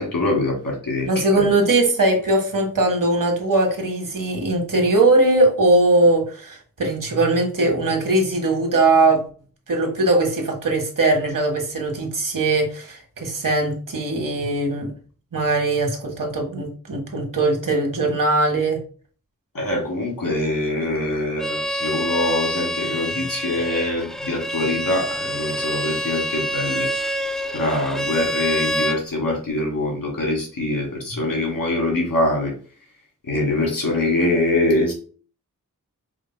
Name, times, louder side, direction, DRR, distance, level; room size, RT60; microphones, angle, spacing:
voice 1, 0.0-1.1 1.3-1.4 19.5-26.9 27.5-32.5 33.3-34.9, left 1 dB, 90° left, 2.2 m, -23 dB
voice 2, 1.1-9.2 9.7-14.9 15.3-18.8, right 2 dB, 75° right, 1.4 m, -20 dB
Bowed string instrument, 21.4-29.0, equal, ahead, 0.3 m, -26 dB
5.0 x 2.1 x 4.3 m
wide cardioid pair, 65°, 33 cm